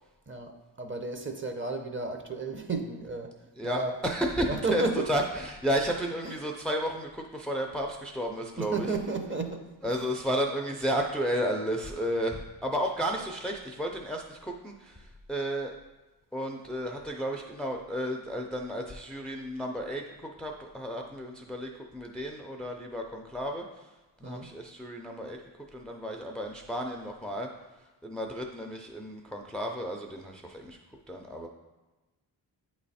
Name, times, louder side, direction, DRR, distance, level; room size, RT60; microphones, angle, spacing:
voice 1, 0.3-3.3 3.6-3.9 4.5-5.0 6.2-6.3 8.6-9.6 24.2-24.5, right 3 dB, 30° right, 5 dB, 0.7 m, -33 dB
voice 2, 3.6-8.9 9.8-15.7 16.3-23.9 24.2-25.4 25.7-27.5 28.0-30.8 31.1-31.5, equal, ahead, 2 dB, 0.5 m, -32 dB
8.2 x 3.1 x 4.2 m, 1.1 s
cardioid pair, 80°, 43 cm